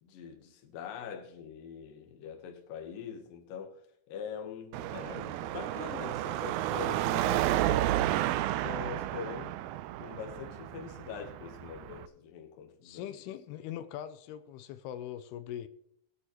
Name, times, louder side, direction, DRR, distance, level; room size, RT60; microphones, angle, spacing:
voice 1, 0.0-3.8 4.1-8.0 8.6-9.7 10.0-13.2, left 7 dB, 65° left, 2.8 m, -43 dB
Car passing by / Traffic noise roadway noise / Engine, 4.7-12.1, right 14 dB, 80° right, 2.4 m, -32 dB
voice 2, 12.8-15.7, left 11 dB, 85° left, 2.6 m, -41 dB
20.5 x 8.7 x 3.1 m
omnidirectional pair, 4.6 m